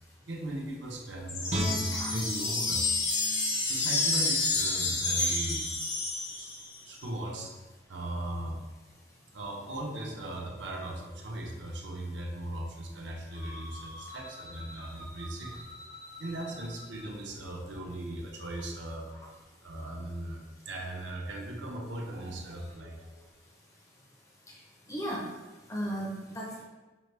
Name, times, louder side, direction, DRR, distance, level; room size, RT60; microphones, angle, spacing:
voice 1, 0.3-2.9 3.6-5.7 6.3-6.5 6.8-7.5 7.9-8.6 9.3-15.7 16.2-19.1 19.6-23.2, right 1 dB, 70° right, 0 dB, 0.7 m, -38 dB
sound 1, 1.3-6.8, left 3 dB, 80° left, 0.8 m, -29 dB
Guitar, 1.5-4.6 5.1-5.2, equal, 40° right, 0.6 m, -37 dB
sound 2, 13.3-17.0, left 1 dB, 65° left, 1.4 m, -47 dB
voice 2, 24.9-25.3 25.7-26.6, equal, 15° left, -3 dB, 0.6 m, -35 dB
5.2 x 2.2 x 3.2 m, 1.2 s
head